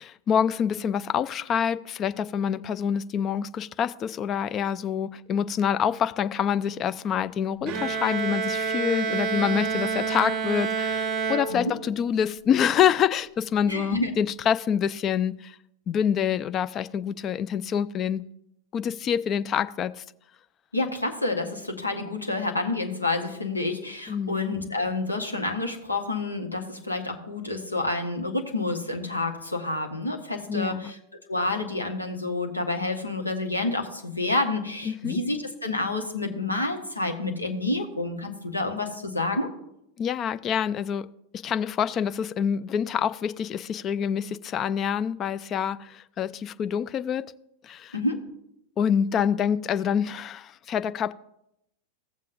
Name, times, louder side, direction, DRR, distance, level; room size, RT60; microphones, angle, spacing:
voice 1, 0.0-15.6 15.9-18.3 18.7-20.0 24.1-24.4 30.5-30.9 34.9-35.2 40.0-41.1 41.3-47.3 47.6-48.0 48.8-51.1, left 8 dB, 30° left, 0.3 m, -26 dB
Bowed string instrument, 7.7-12.1, right 5 dB, 40° right, 0.5 m, -28 dB
voice 2, 13.6-14.1 20.7-31.0 31.3-39.5 47.9-48.2, left 2 dB, 85° left, 1.1 m, -29 dB
15.5 x 7.3 x 2.6 m
figure-of-eight pair, 90°, 0 cm